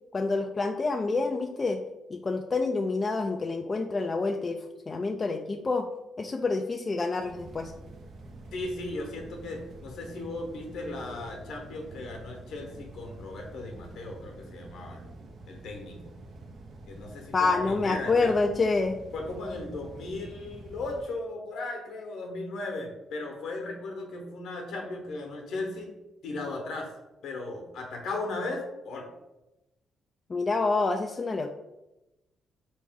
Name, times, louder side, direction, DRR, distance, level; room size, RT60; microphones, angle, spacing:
voice 1, 0.1-1.8 2.1-5.9 6.2-7.7 17.3-19.0 30.3-31.5, left 3 dB, 30° left, 4 dB, 0.3 m, -27 dB
sound 1, 7.2-21.0, right 2 dB, 55° right, 0.6 m, -47 dB
voice 2, 8.5-15.1 15.5-16.1 16.9-18.3 19.1-25.9 26.2-26.9 27.2-29.1, left 2 dB, 75° left, 2 dB, 1.0 m, -36 dB
4.3 x 3.1 x 3.6 m, 0.98 s
cardioid pair, 90°, 0 cm